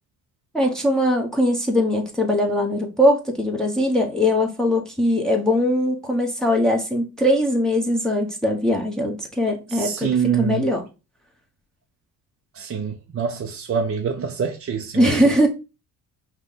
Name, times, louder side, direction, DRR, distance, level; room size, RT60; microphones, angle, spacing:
voice 1, 0.5-10.1 10.4-10.9 15.0-15.5, left 1 dB, ahead, 1.0 m, -21 dB
voice 2, 9.7-10.7 12.5-15.1, right 7 dB, 35° right, 0.6 m, -25 dB
5.1 x 2.4 x 3.9 m
supercardioid pair, 70°, 40 cm